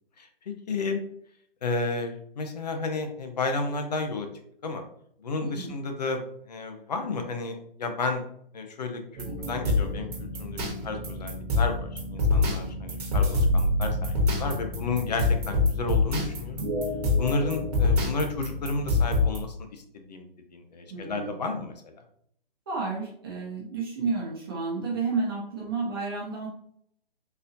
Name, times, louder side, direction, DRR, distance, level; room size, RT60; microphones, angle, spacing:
voice 1, 0.7-1.0 1.6-4.3 4.6-4.8 5.2-6.2 6.5-8.2 8.5-16.6 17.2-19.8 20.1-21.7, left 3 dB, 45° left, 5 dB, 0.7 m, -32 dB
voice 2, 5.4-5.7 9.2-9.5 20.9-21.3 22.7-26.5, right 4 dB, 25° right, -4 dB, 0.7 m, -31 dB
Hip Hop beat Chill calm music, 9.2-19.4, left 2 dB, 45° right, 1.2 m, -26 dB
4.0 x 2.7 x 2.6 m, 0.67 s
hypercardioid pair, 160°, 29 cm